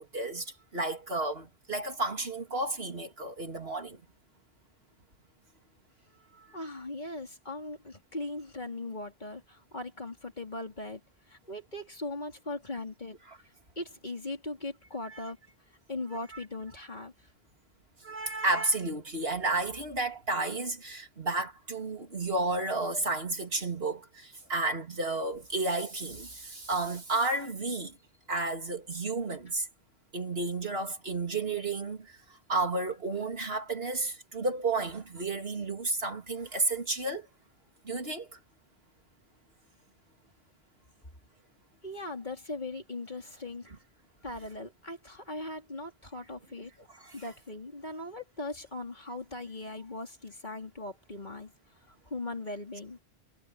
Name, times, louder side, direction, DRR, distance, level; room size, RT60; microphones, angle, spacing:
voice 1, 0.0-4.0 6.4-6.5 18.0-28.0 28.3-29.7 30.1-37.3 37.8-38.4 47.0-47.1, right 2 dB, 70° right, 3.2 m, -32 dB
voice 2, 6.5-11.0 11.3-13.2 13.8-15.4 15.9-17.1 41.8-43.7 44.2-46.7 47.1-51.5 51.9-53.0, left 2 dB, 45° left, 3.8 m, -39 dB
omnidirectional pair, 1.1 m